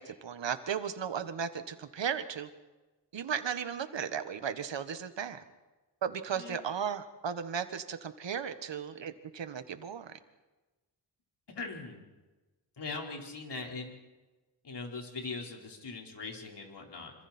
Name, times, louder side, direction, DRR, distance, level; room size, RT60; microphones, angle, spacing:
voice 1, 0.0-2.5 3.1-5.4 6.0-10.1, right 7 dB, 80° right, 10 dB, 1.6 m, -35 dB
voice 2, 11.5-12.0 12.8-13.9 14.6-17.1, left 3 dB, 65° left, 0 dB, 4.8 m, -41 dB
27.0 x 26.0 x 4.5 m, 1.2 s
cardioid pair, 75°, 43 cm